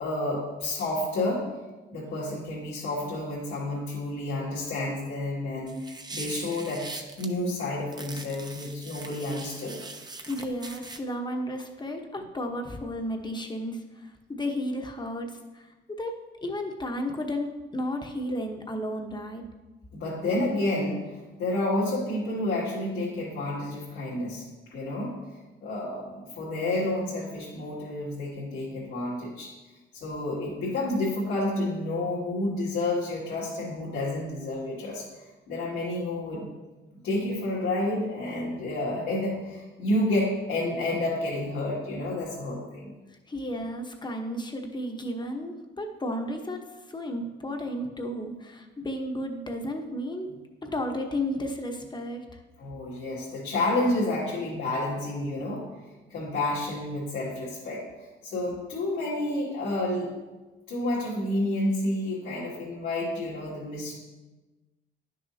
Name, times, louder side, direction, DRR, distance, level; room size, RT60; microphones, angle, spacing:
voice 1, 0.0-1.4 1.9-5.8 6.1-9.8 19.9-24.4 24.7-25.1 25.6-29.5 29.9-35.1 35.5-36.5 37.0-42.9 52.6-55.7 56.1-60.1 60.7-63.9, left 1 dB, 80° left, -9 dB, 2.3 m, -30 dB
sound 1, 5.7-7.3 7.9-11.0, right 3 dB, 20° right, 0.8 m, -41 dB
voice 2, 10.3-19.4 43.3-50.3 50.6-52.3, left 1 dB, 20° left, 3 dB, 1.1 m, -33 dB
10.5 x 6.4 x 2.8 m, 1.2 s
cardioid pair, 90°, 20 cm